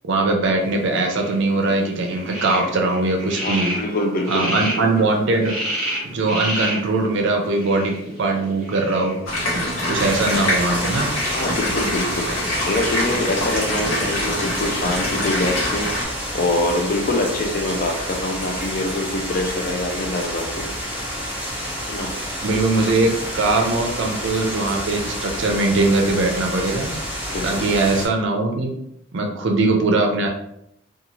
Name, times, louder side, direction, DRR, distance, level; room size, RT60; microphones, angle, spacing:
voice 1, 0.0-3.7 4.3-5.5 6.0-9.2 9.9-11.1 22.4-26.9 27.4-28.7 29.1-30.3, right 2 dB, 60° right, 2 dB, 0.5 m, -21 dB
sound 1, 0.6-14.5, right 1 dB, 35° right, 1.0 m, -32 dB
voice 2, 3.4-4.9 11.3-12.3 12.6-15.9 16.3-20.7 21.9-22.1 27.3-27.5, left 2 dB, 40° left, 3 dB, 0.4 m, -24 dB
sound 2, 9.3-16.0, left 1 dB, 85° left, 0.9 m, -25 dB
sound 3, 9.9-28.1, equal, 5° right, 0.6 m, -29 dB
2.6 x 2.4 x 2.9 m, 0.78 s
head